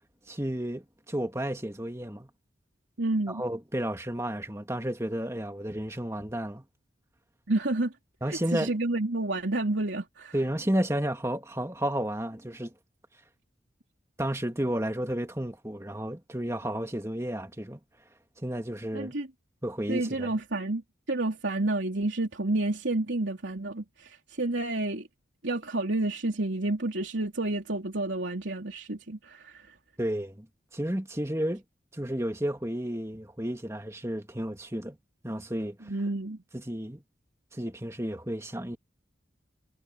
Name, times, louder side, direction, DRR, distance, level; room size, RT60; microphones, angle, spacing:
voice 1, 0.3-2.3 3.3-6.6 8.2-8.7 10.3-12.7 14.2-17.8 18.4-19.1 19.6-20.3 30.0-30.5 30.7-31.6 31.9-35.0 35.2-35.9 36.5-37.0 37.5-38.8, right 1 dB, 15° right, 2.3 m, -32 dB
voice 2, 3.0-3.4 7.5-7.9 8.3-10.3 18.9-19.3 19.9-20.8 21.1-25.1 25.4-29.7 35.9-36.4, right 2 dB, 80° right, 3.2 m, -30 dB
head